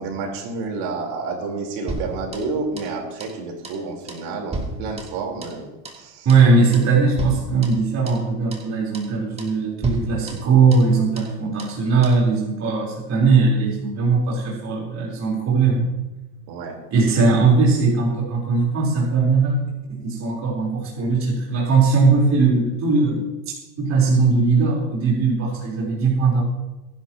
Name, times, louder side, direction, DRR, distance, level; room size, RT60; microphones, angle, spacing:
voice 1, 0.0-5.7 5.9-6.3 16.5-16.8, right 4 dB, 55° right, 1 dB, 4.3 m, -29 dB
sound 1, 1.9-2.9 3.2-3.4 3.6-5.6 5.8-6.0 6.3-6.5 6.7-6.9 7.2-8.2 8.5-8.7 8.9-9.1 9.4-9.6 9.8-10.9 11.2-11.3 11.6-11.8 12.0-12.2, right 2 dB, 10° right, 2.7 m, -34 dB
voice 2, 6.2-15.9 16.9-19.6 19.9-23.2 23.8-26.4, right 4 dB, 30° right, -4 dB, 4.3 m, -19 dB
23.0 x 11.0 x 3.0 m, 1.1 s
supercardioid pair, 115°, 50 cm